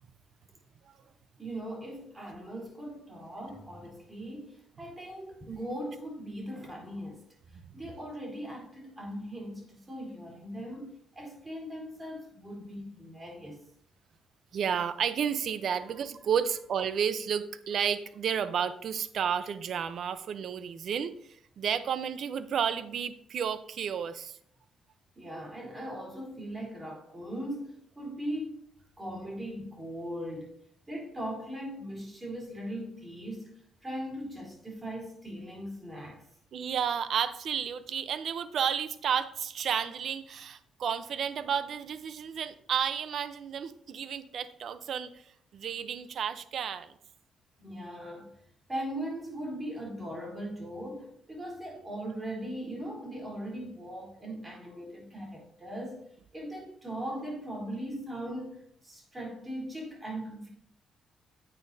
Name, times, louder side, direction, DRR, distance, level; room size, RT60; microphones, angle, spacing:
voice 1, 1.4-7.2 7.7-13.6 25.2-28.6 29.0-30.6 30.9-33.5 33.8-36.2 47.6-48.3 48.7-56.0 56.3-60.5, equal, 20° right, 3.7 m, -39 dB
voice 2, 14.5-24.4 36.5-45.2 45.5-46.9, right 8 dB, 65° right, 0.7 m, -32 dB
9.8 x 8.5 x 2.7 m
cardioid pair, 90°, 0 cm